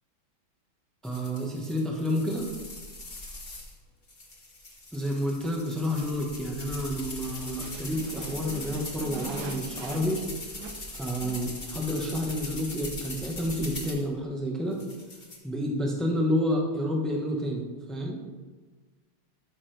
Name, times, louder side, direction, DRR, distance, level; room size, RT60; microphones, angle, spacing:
sound 1, 1.0-3.7 4.1-14.0 14.7-15.4, left 2 dB, 30° left, 1.5 m, -40 dB
voice 1, 1.0-2.5 4.9-10.2 11.0-14.8 15.4-18.2, equal, ahead, 0 dB, 0.4 m, -29 dB
sound 2, 7.1-12.2, right 6 dB, 65° right, 1.0 m, -45 dB
13.5 x 6.1 x 3.4 m, 1.4 s
omnidirectional pair, 2.4 m